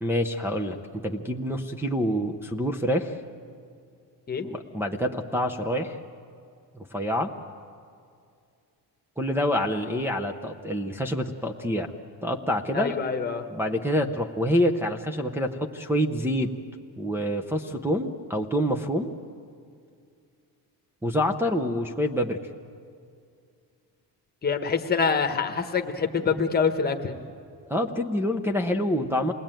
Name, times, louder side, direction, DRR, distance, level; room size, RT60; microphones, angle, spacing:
voice 1, 0.0-3.2 4.4-6.0 6.7-7.3 9.2-11.9 12.2-13.0 13.5-16.5 17.0-19.1 21.0-22.4 27.7-29.3, equal, 5° right, -1 dB, 0.6 m, -27 dB
voice 2, 12.7-13.4 24.4-27.1, left 5 dB, 25° left, 5 dB, 1.2 m, -25 dB
27.5 x 20.0 x 9.0 m, 2.3 s
cardioid pair, 180°, 41 cm